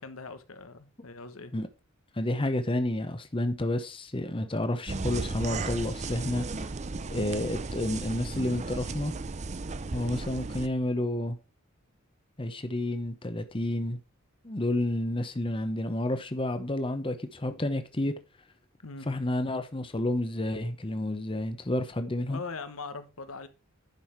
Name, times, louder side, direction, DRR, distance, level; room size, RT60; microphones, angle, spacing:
voice 1, 0.0-1.5 18.8-19.1 22.3-23.5, left 4 dB, 80° left, 1.2 m, -41 dB
voice 2, 2.1-6.7 7.1-9.1 9.9-11.4 12.4-14.0 14.4-18.1 19.1-22.4, left 1 dB, 25° left, 0.9 m, -30 dB
sound 1, 4.9-10.7, right 3 dB, 35° right, 0.6 m, -35 dB
11.0 x 5.6 x 4.5 m
head